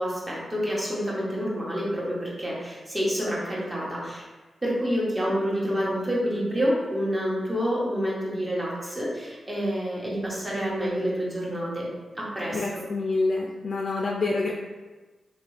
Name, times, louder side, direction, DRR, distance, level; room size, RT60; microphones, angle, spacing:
voice 1, 0.0-4.2 4.6-11.9 12.1-12.8, equal, 25° right, -6 dB, 1.3 m, -28 dB
voice 2, 12.5-14.5, left 3 dB, 60° left, -1 dB, 0.3 m, -27 dB
2.9 x 2.8 x 3.2 m, 1.2 s
supercardioid pair, 45°, 0 cm